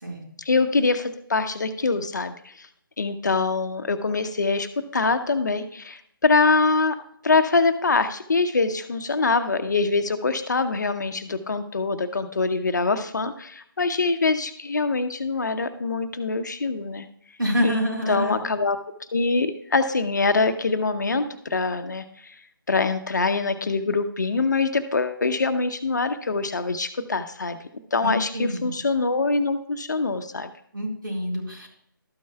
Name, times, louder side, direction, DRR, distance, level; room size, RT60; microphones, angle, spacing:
voice 1, 0.4-2.7 3.0-7.0 7.2-17.0 17.6-17.8 18.1-18.8 19.1-22.3 22.7-27.6 27.9-30.5, left 3 dB, 55° left, 9 dB, 0.8 m, -24 dB
voice 2, 17.4-18.4 28.0-28.7 30.7-31.7, equal, 70° right, -2 dB, 4.4 m, -27 dB
13.0 x 9.3 x 2.3 m, 0.68 s
figure-of-eight pair, 150°, 12 cm